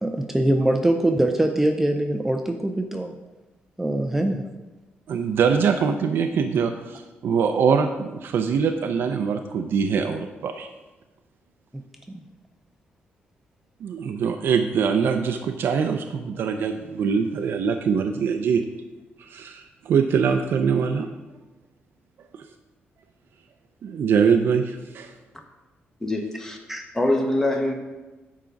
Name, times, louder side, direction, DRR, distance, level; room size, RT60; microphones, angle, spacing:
voice 1, 0.0-3.1 3.8-4.4 11.7-11.8 12.1-12.2 26.7-26.8, right 1 dB, 5° right, 5 dB, 0.4 m, -23 dB
voice 2, 5.1-10.7 13.8-18.6 19.3-21.1 22.3-22.4 23.8-25.1, right 6 dB, 60° right, 5 dB, 0.5 m, -23 dB
voice 3, 26.0-26.6 26.9-27.7, left 1 dB, 10° left, 3 dB, 0.9 m, -23 dB
8.9 x 3.7 x 5.8 m, 1.1 s
cardioid pair, 155°, 4 cm